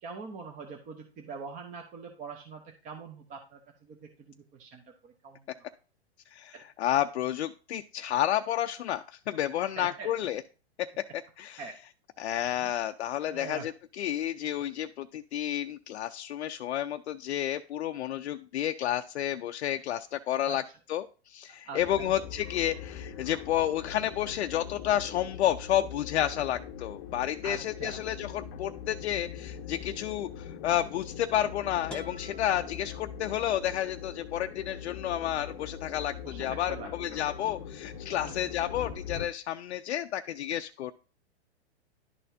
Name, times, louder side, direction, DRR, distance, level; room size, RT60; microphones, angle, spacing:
voice 1, 0.0-5.5 6.5-6.6 9.8-10.1 11.6-11.7 12.6-12.7 13.3-13.7 20.5-20.6 21.5-22.1 27.4-28.0 36.1-37.2 38.2-38.3, right 4 dB, 25° right, 3 dB, 0.8 m, -43 dB
voice 2, 6.3-10.4 10.8-11.0 11.4-11.6 12.2-20.6 20.9-40.9, left 11 dB, 80° left, 7 dB, 0.5 m, -31 dB
sound 1, 21.8-39.3, left 8 dB, 35° left, 0.7 m, -42 dB
sound 2, 31.9-33.8, left 2 dB, 5° left, 1.3 m, -48 dB
11.0 x 4.3 x 2.7 m, 0.37 s
hypercardioid pair, 130°, 32 cm